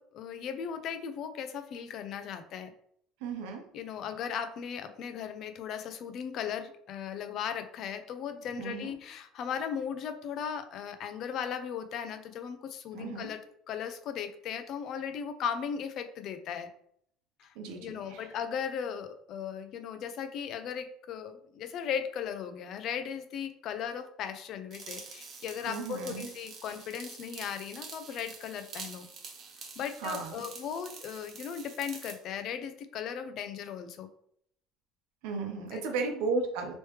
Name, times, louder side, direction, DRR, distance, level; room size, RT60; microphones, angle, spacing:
voice 1, 0.0-2.7 3.7-16.7 17.4-29.1 29.8-34.1 35.7-35.8, left 7 dB, 50° left, 9 dB, 0.4 m, -37 dB
voice 2, 3.2-3.7 8.6-8.9 12.9-13.3 17.6-18.3 25.7-26.3 30.0-30.5 35.2-36.7, right 4 dB, 85° right, 4 dB, 0.7 m, -35 dB
sound 1, 24.7-32.2, right 5 dB, 45° right, 0.7 m, -46 dB
3.2 x 3.0 x 3.1 m, 0.68 s
cardioid pair, 130°, 0 cm